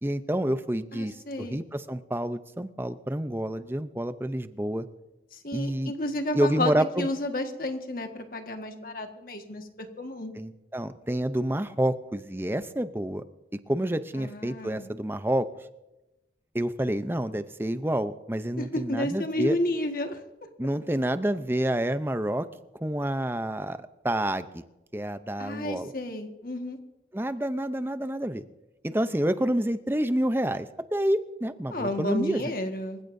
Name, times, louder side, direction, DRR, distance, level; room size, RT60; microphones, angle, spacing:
voice 1, 0.0-4.9 5.5-5.9 6.3-7.1 10.4-13.2 13.7-15.5 16.5-19.5 20.6-22.5 22.8-24.6 24.9-25.9 27.1-28.4 28.8-32.4, right 1 dB, 10° right, 11 dB, 0.6 m, -28 dB
voice 2, 0.9-1.6 5.3-10.3 14.1-14.9 18.6-20.2 25.4-26.8 31.7-33.0, left 1 dB, 50° left, 5 dB, 1.6 m, -31 dB
26.5 x 15.5 x 2.7 m, 0.98 s
head